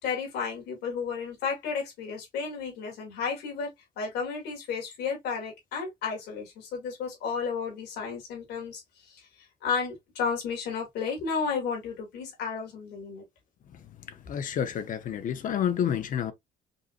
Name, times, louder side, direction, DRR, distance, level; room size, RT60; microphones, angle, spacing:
voice 1, 0.0-3.7 4.0-9.2 9.6-13.2, left 5 dB, 75° left, 2.6 m, -32 dB
voice 2, 14.3-16.3, left 9 dB, 50° left, 0.7 m, -29 dB
5.3 x 2.8 x 2.4 m
cardioid pair, 110°, 17 cm